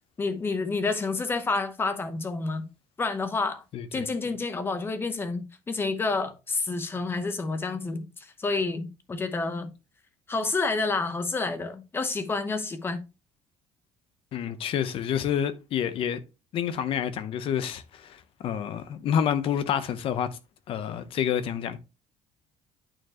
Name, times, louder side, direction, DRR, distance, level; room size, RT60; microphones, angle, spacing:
voice 1, 0.2-2.7 3.0-3.6 3.9-9.7 10.3-13.0, left 3 dB, 20° left, 0.9 m, -29 dB
voice 2, 3.7-4.3 14.3-16.2 16.5-20.4 20.7-21.8, left 9 dB, 50° left, 0.8 m, -28 dB
9.0 x 4.5 x 2.9 m
cardioid pair, 160°, 12 cm